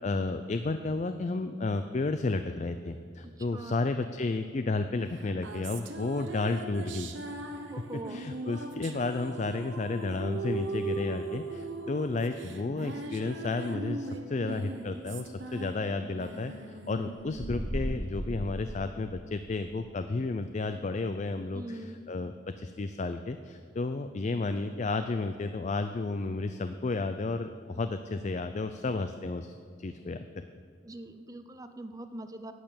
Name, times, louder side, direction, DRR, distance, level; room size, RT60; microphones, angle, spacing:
voice 1, 0.0-7.1 8.1-30.5, left 3 dB, 40° left, 9 dB, 0.4 m, -32 dB
voice 2, 3.4-3.8 7.7-8.2 21.5-22.0 30.8-32.5, right 1 dB, 20° right, 8 dB, 0.7 m, -42 dB
sound 1, 5.1-18.8, right 3 dB, 85° right, 1.0 m, -39 dB
sound 2, 17.2-19.7, equal, 40° right, 1.6 m, -36 dB
11.5 x 8.7 x 6.9 m, 2.3 s
head